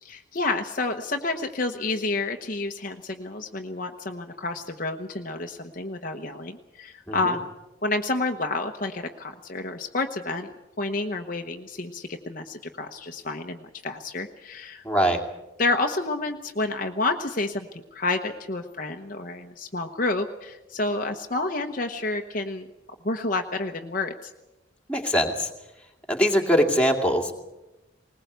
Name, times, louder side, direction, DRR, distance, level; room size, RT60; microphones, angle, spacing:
voice 1, 0.0-7.5 7.8-10.5 10.8-14.8 15.6-22.7 23.0-24.3, left 2 dB, 45° left, 4 dB, 1.1 m, -29 dB
voice 2, 14.8-15.2 24.9-25.5 26.1-27.3, equal, 5° left, 2 dB, 2.4 m, -22 dB
20.5 x 20.0 x 8.1 m, 0.98 s
head